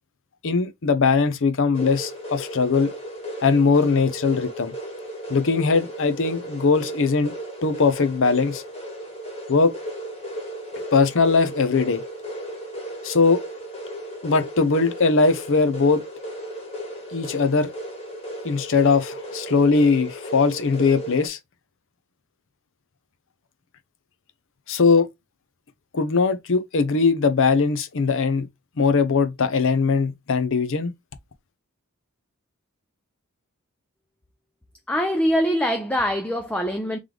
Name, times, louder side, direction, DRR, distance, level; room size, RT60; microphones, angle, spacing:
voice 1, 0.4-2.9 3.4-4.7 5.3-7.3 7.6-8.6 9.5-9.7 10.9-12.0 13.0-13.4 14.2-16.0 17.1-17.7 18.4-21.4 24.7-25.1 25.9-28.5 28.8-30.9, left 4 dB, 60° left, 0.6 m, -20 dB
sound 1, 1.7-21.3, right 1 dB, 30° left, 1.7 m, -35 dB
voice 2, 34.9-37.0, equal, 5° left, 0.4 m, -23 dB
3.7 x 3.2 x 3.3 m
head